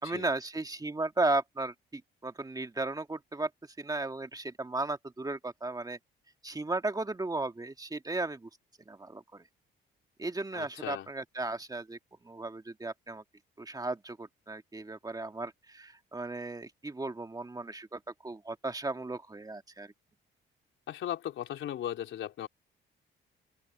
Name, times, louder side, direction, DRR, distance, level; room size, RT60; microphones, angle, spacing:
voice 1, 0.0-6.0 6.4-8.5 8.9-9.4 10.2-12.0 12.2-13.2 13.6-19.9, right 2 dB, 20° right, 1.8 m, -35 dB
voice 2, 10.5-11.1 20.9-22.5, left 11 dB, 75° left, 3.3 m, -37 dB
open air
cardioid pair, 90°, 20 cm